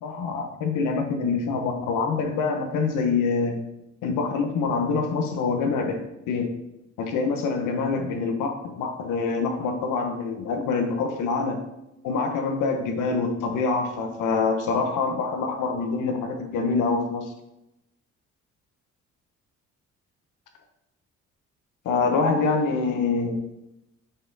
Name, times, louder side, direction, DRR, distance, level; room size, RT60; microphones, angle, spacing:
voice 1, 0.0-3.6 4.0-6.0 6.3-6.5 7.0-11.6 12.0-17.3 21.8-23.4, left 4 dB, 90° left, 4 dB, 1.1 m, -25 dB
5.9 x 5.8 x 4.1 m, 0.89 s
cardioid pair, 90°, 30 cm